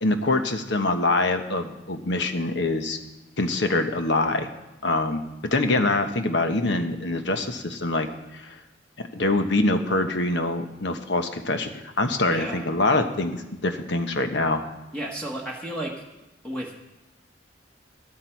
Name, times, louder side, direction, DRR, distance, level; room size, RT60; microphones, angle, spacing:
voice 1, 0.0-3.0 3.4-4.5 4.8-8.1 8.3-8.6 9.1-14.7, left 2 dB, 65° left, 7 dB, 1.2 m, -24 dB
voice 2, 12.3-12.7 14.9-16.0 16.4-16.7, right 1 dB, 5° left, -2 dB, 1.4 m, -33 dB
13.0 x 13.0 x 4.6 m, 1.0 s
head